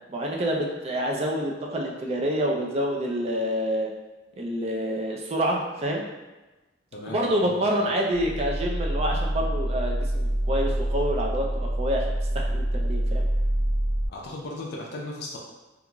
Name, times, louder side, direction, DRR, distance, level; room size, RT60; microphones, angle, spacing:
voice 1, 0.1-3.9 4.3-6.0 7.1-12.1 12.3-13.3, equal, 35° right, -1 dB, 0.4 m, -27 dB
voice 2, 6.9-7.7 14.1-15.4, left 2 dB, 60° left, -2 dB, 0.4 m, -37 dB
sound 1, 8.1-14.1, right 1 dB, 65° right, 0.7 m, -26 dB
2.4 x 2.3 x 2.9 m, 1.1 s
head